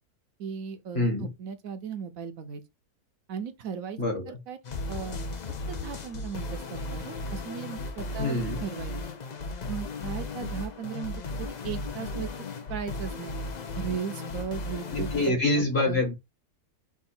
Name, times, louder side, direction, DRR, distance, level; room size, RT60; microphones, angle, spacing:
voice 1, 0.4-2.6 3.3-4.0 4.3-4.6 4.9-5.2 5.7-8.9 9.7-12.3 12.7-13.4 13.8-16.0, right 7 dB, 70° right, 1.0 m, -37 dB
voice 2, 0.9-1.3 4.0-4.4 8.2-8.6 14.9-16.1, left 2 dB, 40° left, 1.8 m, -26 dB
sound 1, 4.6-15.3, left 2 dB, 60° left, 0.4 m, -35 dB
4.7 x 2.6 x 4.2 m
omnidirectional pair, 1.6 m